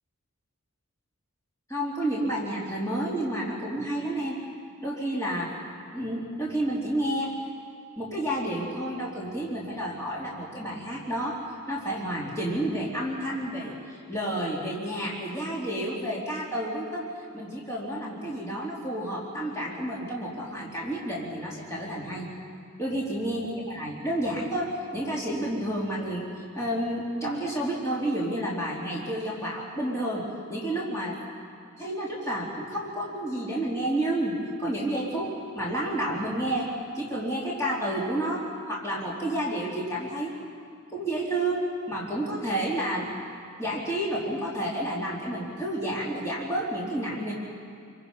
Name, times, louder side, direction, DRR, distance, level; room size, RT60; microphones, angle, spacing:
voice 1, 1.7-4.4 4.8-5.5 5.9-7.3 8.0-13.7 14.1-17.1 17.3-22.3 22.8-26.3 26.5-31.1 31.8-36.7 36.9-40.4 40.9-43.1 43.6-47.3, right 1 dB, 15° left, -5 dB, 3.4 m, -30 dB
28.5 x 24.0 x 5.5 m, 2.4 s
head